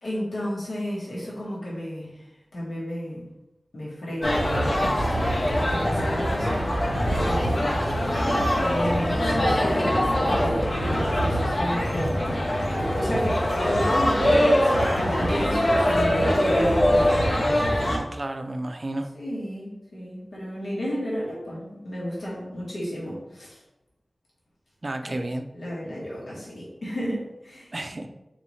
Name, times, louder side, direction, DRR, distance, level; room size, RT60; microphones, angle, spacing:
voice 1, 0.0-3.3 3.7-4.8 5.0-5.1 5.6-7.6 8.6-12.1 12.7-17.3 19.1-23.6 25.0-25.2 25.5-27.7, equal, 85° left, -7 dB, 1.4 m, -32 dB
sound 1, 4.2-18.0, equal, 60° left, 0.8 m, -23 dB
voice 2, 17.9-19.1 24.8-25.4 27.7-28.1, right 1 dB, 45° right, 7 dB, 0.4 m, -31 dB
4.1 x 3.5 x 3.1 m, 0.96 s
wide cardioid pair, 80°, 0 cm